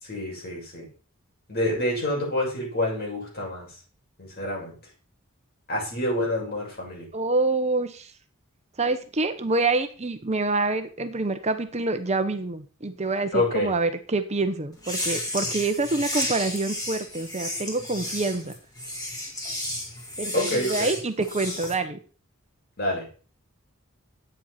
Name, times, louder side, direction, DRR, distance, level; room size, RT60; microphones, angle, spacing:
voice 1, 0.0-0.9 1.5-3.7 4.2-4.7 5.7-7.0 13.3-13.7 20.3-20.9 22.8-23.1, left 1 dB, 50° left, -2 dB, 6.7 m, -27 dB
voice 2, 7.1-8.1 8.8-18.5 20.2-22.0, right 3 dB, 30° right, 8 dB, 1.0 m, -26 dB
sound 1, 14.8-21.7, left 1 dB, 20° left, 3.8 m, -32 dB
10.5 x 9.0 x 5.8 m, 0.39 s
head